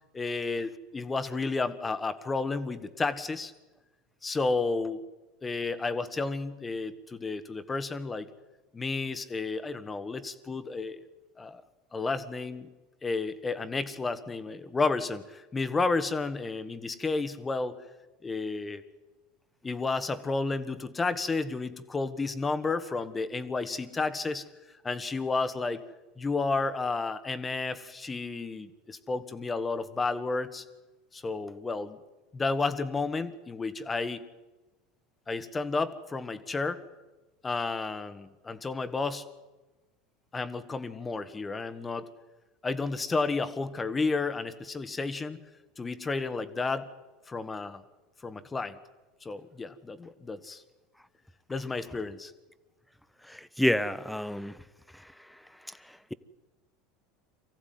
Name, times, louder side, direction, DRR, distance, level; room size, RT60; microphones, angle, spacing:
voice 1, 0.1-3.5 4.2-5.0 5.4-8.3 8.7-11.1 11.4-11.6 11.9-12.7 13.0-17.8 18.2-18.8 19.6-24.4 24.8-25.8 26.2-30.6 31.1-32.0 32.3-34.3 35.3-36.8 37.4-39.2 40.3-42.1 42.6-45.4 45.8-46.9 47.3-47.8 48.2-48.8 49.2-50.6 51.5-52.3, left 3 dB, 20° left, 11 dB, 1.7 m, -31 dB
voice 2, 53.2-54.6 54.9-55.1 55.6-56.1, left 1 dB, 5° left, 15 dB, 1.0 m, -30 dB
24.0 x 15.0 x 9.5 m, 1.1 s
hypercardioid pair, 95°, 0 cm